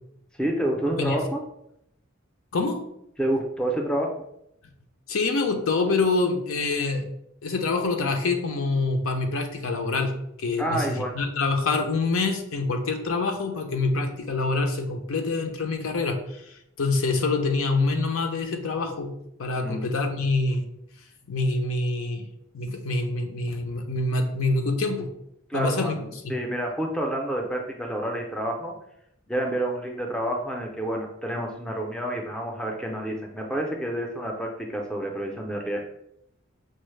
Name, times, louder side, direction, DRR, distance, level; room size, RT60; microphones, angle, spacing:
voice 1, 0.4-1.4 3.2-4.1 10.6-11.2 19.6-19.9 25.5-26.0 26.3-28.7 29.3-35.8, right 1 dB, 5° left, 1 dB, 0.4 m, -28 dB
voice 2, 5.1-7.0 7.4-19.1 19.4-20.6 21.3-22.2 22.5-25.1 25.5-26.0 26.2-26.4, left 3 dB, 80° left, 5 dB, 0.6 m, -26 dB
5.3 x 2.0 x 3.1 m, 0.78 s
head